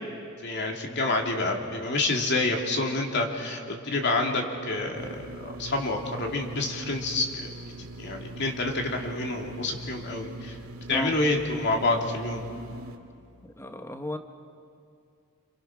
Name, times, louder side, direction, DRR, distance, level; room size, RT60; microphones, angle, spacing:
voice 1, 0.4-7.5 8.0-10.6 10.9-12.4, left 2 dB, 55° left, 1 dB, 2.9 m, -28 dB
sound 1, 5.0-13.0, right 1 dB, 85° right, 2.4 m, -41 dB
voice 2, 13.4-14.2, left 1 dB, 10° left, 6 dB, 1.0 m, -34 dB
28.5 x 28.0 x 6.2 m, 2.4 s
head